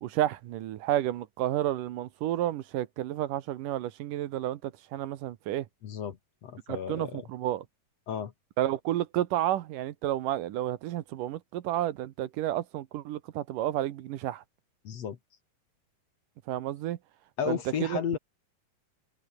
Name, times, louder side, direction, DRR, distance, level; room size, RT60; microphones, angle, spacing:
voice 1, 0.0-5.7 6.7-7.6 8.6-14.4 16.5-17.0 17.5-18.0, right 13 dB, 75° right, 2.6 m, -31 dB
voice 2, 5.8-7.2 8.1-8.3 14.8-15.2 17.4-18.2, left 8 dB, 55° left, 2.5 m, -33 dB
omnidirectional pair, 3.9 m